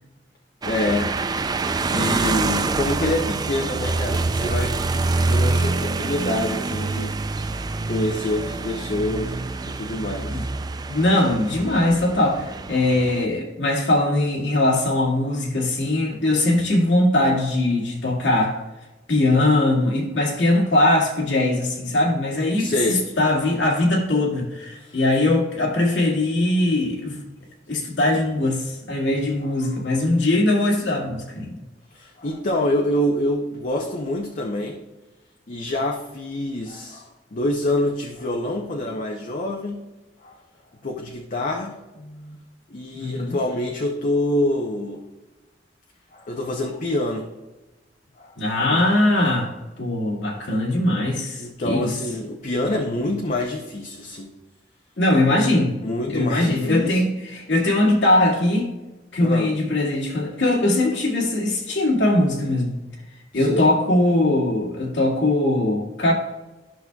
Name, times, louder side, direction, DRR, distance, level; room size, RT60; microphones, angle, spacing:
voice 1, 0.6-1.2 1.5-4.8 5.3-7.2 7.9-10.4 22.6-23.0 24.8-25.0 29.4-29.5 31.9-34.8 35.5-39.8 40.2-40.4 40.8-42.4 42.7-45.0 46.1-47.3 48.2-48.3 48.7-48.8 51.4-54.3 55.8-57.0 59.2-59.5 63.3-63.7, left 1 dB, 45° left, 1 dB, 0.7 m, -26 dB
sound 1, 0.6-13.3, right 3 dB, 25° right, 0.3 m, -26 dB
voice 2, 10.9-18.5 19.1-27.2 27.7-31.6 42.9-43.4 48.4-49.5 49.8-51.9 55.0-55.8 56.1-58.7 59.1-62.7 63.3-66.1, left 1 dB, 90° left, -3 dB, 2.1 m, -21 dB
12.0 x 6.1 x 2.3 m, 1.1 s
head